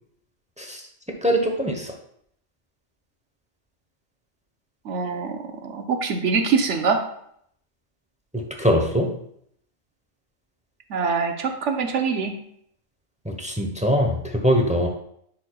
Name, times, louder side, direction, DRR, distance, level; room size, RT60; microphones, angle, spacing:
voice 1, 1.2-1.9 8.3-9.1 13.2-14.9, equal, 5° right, 2 dB, 0.6 m, -22 dB
voice 2, 4.8-7.0 10.9-12.3, right 5 dB, 65° right, 5 dB, 1.1 m, -24 dB
10.5 x 4.6 x 2.3 m, 0.70 s
omnidirectional pair, 1.4 m